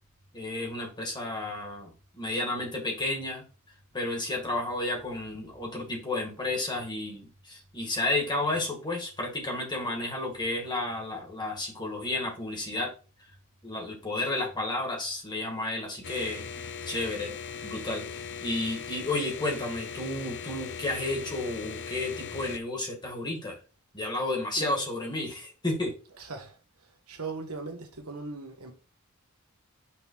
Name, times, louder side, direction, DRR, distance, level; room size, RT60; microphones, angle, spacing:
voice 1, 0.3-3.4 3.9-12.9 13.6-16.4 16.9-17.3 17.6-23.6 23.9-25.9, left 2 dB, 20° left, 1.9 m, -32 dB
sound 1, 16.0-22.6, left 6 dB, 55° left, 0.6 m, -39 dB
voice 2, 26.2-26.5 27.1-28.7, right 3 dB, 75° right, 1.5 m, -39 dB
5.8 x 3.8 x 4.6 m
head